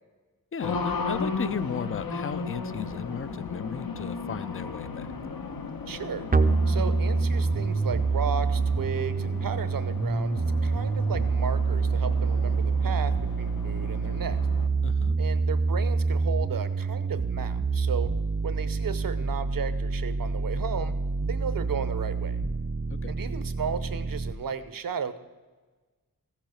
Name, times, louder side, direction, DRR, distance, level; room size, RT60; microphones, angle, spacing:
voice 1, 0.5-5.1 14.8-15.1 22.9-23.1, left 7 dB, 40° left, 17 dB, 0.4 m, -35 dB
Race car auto racing, 0.6-14.7, left 4 dB, 75° left, 1.1 m, -36 dB
voice 2, 5.9-6.2 6.7-14.4 15.2-18.1 18.4-20.9 21.3-22.4 23.1-25.2, right 6 dB, 70° right, 12 dB, 0.9 m, -34 dB
sound 1, 6.3-24.3, right 4 dB, 25° right, 0.5 m, -27 dB
15.0 x 7.3 x 6.5 m, 1.3 s
wide cardioid pair, 105°, 35 cm